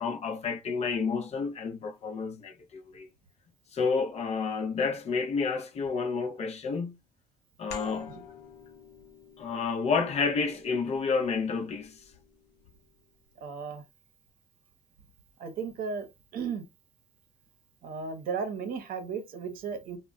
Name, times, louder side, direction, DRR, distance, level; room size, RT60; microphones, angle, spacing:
voice 1, 0.0-3.1 3.7-7.0 7.6-8.2 9.4-12.0, left 5 dB, 40° left, 0.4 m, -30 dB
sound 1, 7.7-13.0, left 7 dB, 70° left, 0.7 m, -49 dB
voice 2, 13.4-13.8 15.4-16.1 16.3-16.6 17.8-20.0, right 5 dB, 60° right, 0.7 m, -34 dB
2.1 x 2.1 x 3.6 m
cardioid pair, 110°, 17 cm